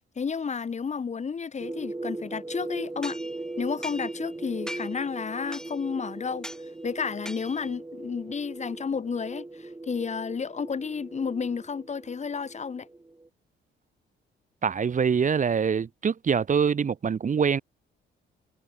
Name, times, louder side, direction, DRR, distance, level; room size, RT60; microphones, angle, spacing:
voice 1, 0.2-3.2 3.6-6.5 6.8-12.9, left 5 dB, 35° left, 1.4 m, -31 dB
sound 1, 1.6-13.3, right 2 dB, 15° right, 2.0 m, -39 dB
sound 2, 3.0-4.4 4.7-5.1 5.5-6.0 6.4-6.7 7.3-7.8, equal, 5° left, 6.0 m, -41 dB
voice 2, 14.6-17.6, right 6 dB, 40° right, 1.4 m, -24 dB
cardioid pair, 90°, 20 cm